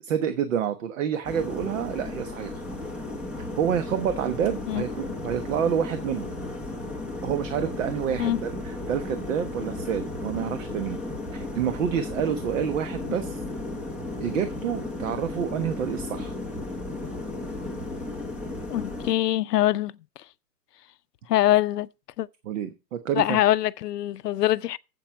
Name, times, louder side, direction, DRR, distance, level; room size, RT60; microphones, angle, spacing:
voice 1, 0.0-2.5 3.6-6.3 7.2-11.0 11.3-13.4 14.2-16.3 22.4-23.4, right 8 dB, 50° right, 1.2 m, -28 dB
sound 1, 1.2-19.1, left 2 dB, ahead, 0.7 m, -34 dB
voice 2, 18.7-20.0 21.3-21.9 22.2-22.3 23.2-24.8, left 14 dB, 70° left, 0.7 m, -23 dB
8.2 x 8.0 x 5.7 m
hypercardioid pair, 150°, 50 cm